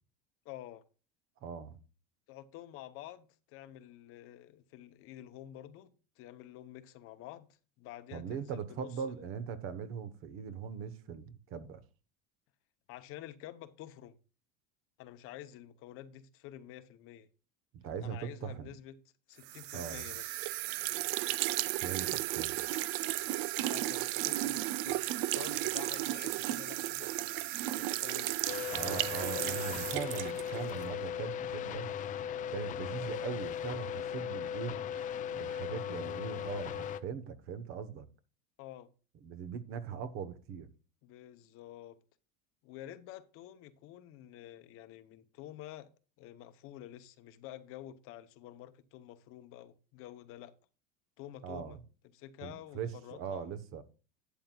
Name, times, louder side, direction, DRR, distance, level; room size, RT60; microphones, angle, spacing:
voice 1, 0.4-0.8 2.3-7.5 7.8-9.2 12.9-14.2 15.0-17.3 18.0-19.0 19.3-20.3 23.7-27.1 27.8-28.4 29.3-29.9 38.6-38.9 41.0-42.0 42.6-45.9 46.2-50.5 51.2-51.8 52.1-53.5, left 13 dB, 50° left, 0.8 m, -49 dB
voice 2, 1.4-1.8 8.1-11.8 17.7-18.7 19.7-20.1 21.8-22.6 28.7-31.9 32.5-34.8 35.3-38.1 39.2-40.7 51.4-51.8 52.4-53.8, right 7 dB, 45° right, 1.1 m, -40 dB
sound 1, 19.5-30.9, right 17 dB, 70° right, 0.5 m, -34 dB
sound 2, 28.5-37.0, left 9 dB, 25° left, 0.5 m, -38 dB
11.5 x 9.2 x 2.3 m
cardioid pair, 155°, 30 cm